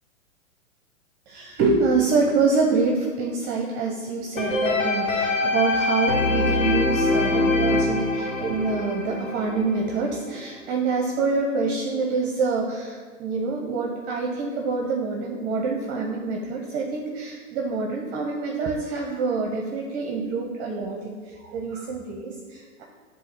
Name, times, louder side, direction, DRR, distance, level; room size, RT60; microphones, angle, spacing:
voice 1, 1.3-22.8, right 4 dB, 25° right, 0 dB, 0.6 m, -26 dB
sound 1, 4.4-10.4 10.9-11.0, left 2 dB, 65° left, 1.9 m, -24 dB
7.5 x 2.8 x 5.8 m, 1.5 s
hypercardioid pair, 120°, 41 cm